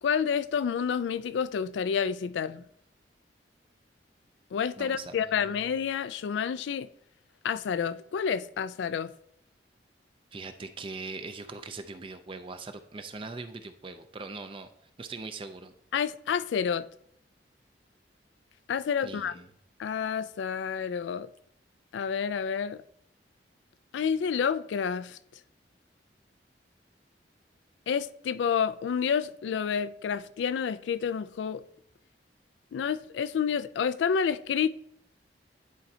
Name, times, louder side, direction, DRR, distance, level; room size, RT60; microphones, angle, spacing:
voice 1, 0.0-2.7 4.5-6.9 7.4-9.1 15.9-16.9 18.7-19.4 19.8-21.3 21.9-22.8 23.9-25.2 27.9-31.6 32.7-34.7, left 7 dB, 80° left, 0.3 m, -29 dB
voice 2, 4.8-5.6 10.3-14.7 15.0-15.7 19.0-19.5, right 3 dB, 30° right, 0.4 m, -41 dB
10.5 x 4.3 x 2.8 m
head